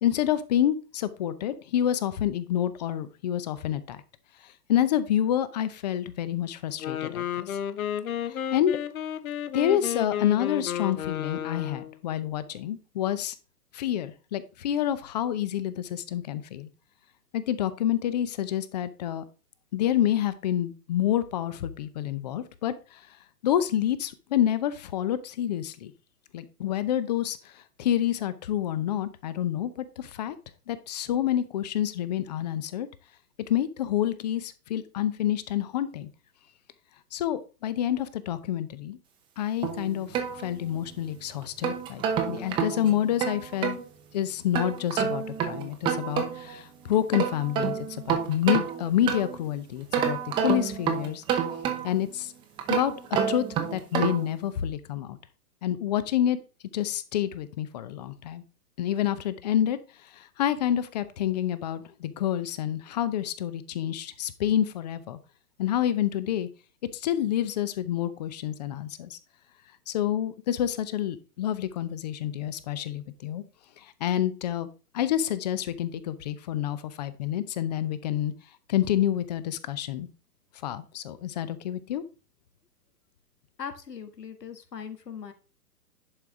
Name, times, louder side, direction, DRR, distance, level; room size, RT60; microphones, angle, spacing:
voice 1, 0.0-4.0 4.7-7.6 8.3-8.8 9.5-13.3 13.7-16.7 17.3-19.2 19.7-23.0 23.4-25.9 26.3-27.5 27.8-30.4 30.7-32.9 33.5-36.1 37.1-39.0 39.4-43.8 44.1-51.2 51.8-52.3 52.7-52.9 53.3-53.5 53.7-55.2 55.6-56.4 56.7-58.4 58.8-59.8 60.1-65.2 65.6-66.5 66.9-69.2 69.9-73.4 74.0-74.7 74.9-78.3 78.7-80.1 80.6-82.0, left 11 dB, 25° left, 14 dB, 0.6 m, -28 dB
Wind instrument woodwind instrument, 6.7-12.0, left 9 dB, 60° left, 0.9 m, -32 dB
sound 1, 39.6-41.0 41.4-43.8 44.5-46.6 46.9-49.5 49.9-52.1 52.6-54.3, right 8 dB, 10° right, 0.6 m, -29 dB
voice 2, 83.6-85.3, left 7 dB, 85° left, 8 dB, 1.7 m, -39 dB
11.0 x 4.8 x 3.6 m, 0.34 s
hypercardioid pair, 135°, 47 cm